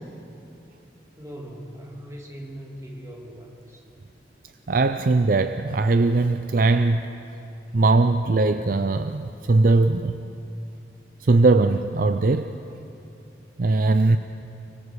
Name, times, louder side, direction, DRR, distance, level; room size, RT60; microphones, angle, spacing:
voice 1, 1.2-3.8, equal, 20° right, 2.8 m, -40 dB
voice 2, 4.7-7.1 7.7-10.2 11.3-12.5 13.6-14.2, right 3 dB, 55° right, 0.5 m, -20 dB
25.0 x 24.0 x 4.8 m
head